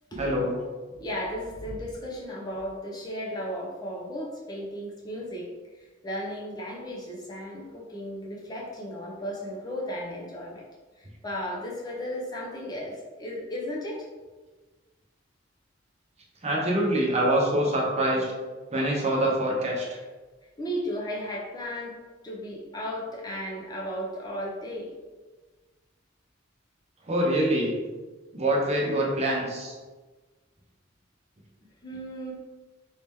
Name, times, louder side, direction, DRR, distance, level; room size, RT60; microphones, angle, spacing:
voice 1, 0.2-0.5 16.4-18.2 18.7-19.9 27.1-27.8 28.3-29.7, right 1 dB, 35° right, -2 dB, 0.7 m, -25 dB
voice 2, 0.9-10.6 11.0-14.1 20.6-22.0 22.2-24.9 31.8-32.3, equal, 20° left, -3 dB, 0.6 m, -35 dB
3.1 x 2.8 x 3.4 m, 1.3 s
head